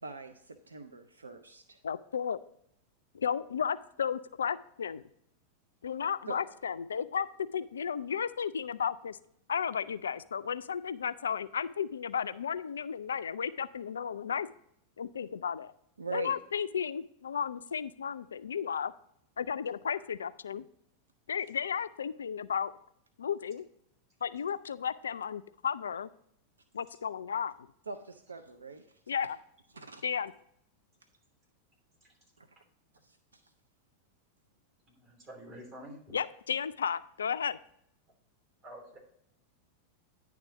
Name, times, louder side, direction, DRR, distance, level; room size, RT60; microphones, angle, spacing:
voice 1, 0.0-1.8 6.3-6.4 16.0-16.3 27.9-28.9 29.7-30.0 32.4-32.5 33.0-33.4, right 5 dB, 75° right, 8 dB, 0.5 m, -43 dB
voice 2, 1.8-2.4 3.1-5.0 5.8-7.3 7.5-9.2 9.5-14.5 15.0-15.7 16.1-18.9 19.4-20.6 21.3-22.7 23.2-23.6 24.2-26.1 26.7-27.5 29.1-29.4 30.0-30.3 36.1-37.6, left 7 dB, 70° left, 14 dB, 0.3 m, -33 dB
voice 3, 34.9-36.1 38.6-39.0, equal, 35° right, -2 dB, 3.2 m, -48 dB
10.0 x 3.5 x 5.8 m, 0.72 s
figure-of-eight pair, 90°, 0 cm